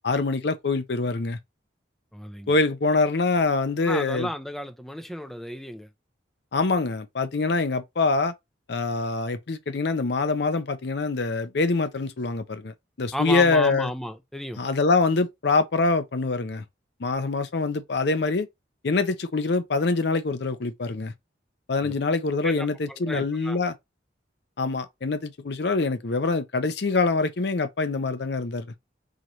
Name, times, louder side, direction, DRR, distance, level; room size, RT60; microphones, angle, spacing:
voice 1, 0.0-1.4 2.5-4.3 6.5-8.3 8.7-13.9 14.6-16.6 17.0-18.5 18.8-21.1 21.7-23.7 24.6-28.7, left 3 dB, 60° left, 0.5 m, -24 dB
voice 2, 2.1-2.6 3.8-5.9 13.1-14.6 21.8-21.9 22.4-22.5 22.9-23.6, equal, ahead, 0.4 m, -33 dB
3.9 x 3.0 x 3.1 m
head